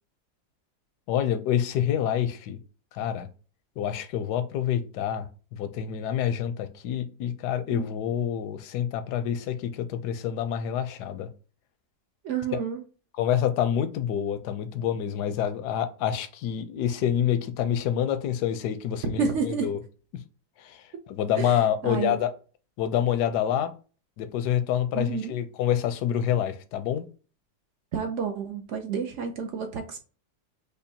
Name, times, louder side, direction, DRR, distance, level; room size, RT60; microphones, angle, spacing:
voice 1, 1.1-2.6 2.9-3.3 3.8-5.3 5.5-11.3 12.5-12.6 13.2-19.8 20.6-22.3 22.8-23.7 24.2-27.1, left 9 dB, 85° left, 1.2 m, -27 dB
voice 2, 12.2-12.8 19.0-19.7 21.4-21.6 21.8-22.2 24.9-25.3 27.9-30.0, right 6 dB, 65° right, 0.7 m, -30 dB
5.2 x 2.2 x 2.7 m
omnidirectional pair, 1.7 m